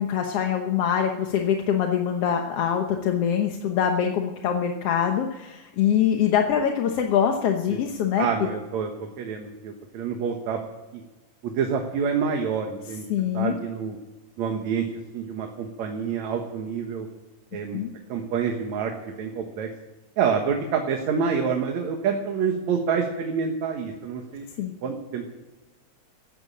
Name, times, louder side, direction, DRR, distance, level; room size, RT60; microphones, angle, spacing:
voice 1, 0.0-8.3 13.1-13.6 17.7-17.9 24.6-24.7, left 8 dB, 60° left, 3 dB, 1.8 m, -24 dB
voice 2, 8.2-10.6 10.9-11.0 11.4-13.0 13.3-14.0 14.4-14.9 15.1-17.1 17.5-17.8 18.1-19.7 20.2-24.5 24.8-25.4, right 6 dB, 65° right, 3 dB, 2.6 m, -27 dB
15.0 x 10.5 x 8.6 m, 1.2 s
omnidirectional pair, 3.6 m